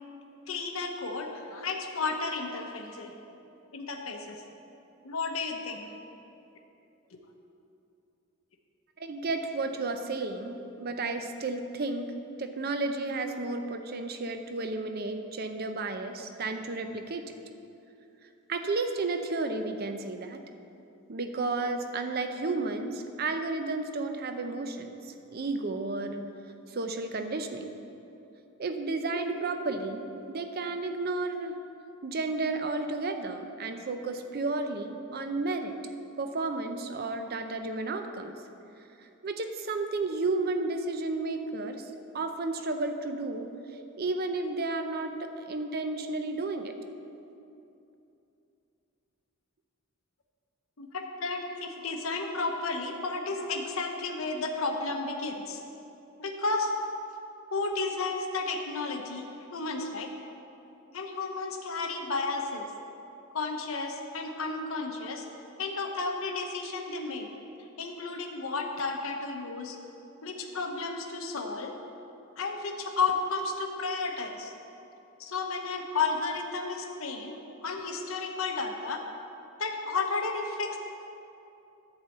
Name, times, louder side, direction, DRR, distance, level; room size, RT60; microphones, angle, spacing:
voice 1, 0.5-3.1 3.7-4.4 5.0-5.9 7.1-7.2 50.8-55.6 56.2-56.7 57.5-60.1 60.9-62.7 63.3-65.2 65.6-67.3 67.8-69.8 70.2-71.7 72.4-74.5 75.2-79.0 79.6-80.8, left 3 dB, 70° left, 3 dB, 0.9 m, -32 dB
voice 2, 9.0-12.1 12.4-17.2 18.5-20.4 21.1-25.0 25.3-26.3 26.7-27.7 28.6-31.5 32.0-35.7 36.2-38.3 39.2-41.8 42.1-43.5 44.0-46.7, right 3 dB, 45° right, 7 dB, 0.6 m, -32 dB
11.0 x 4.1 x 7.8 m, 2.8 s
head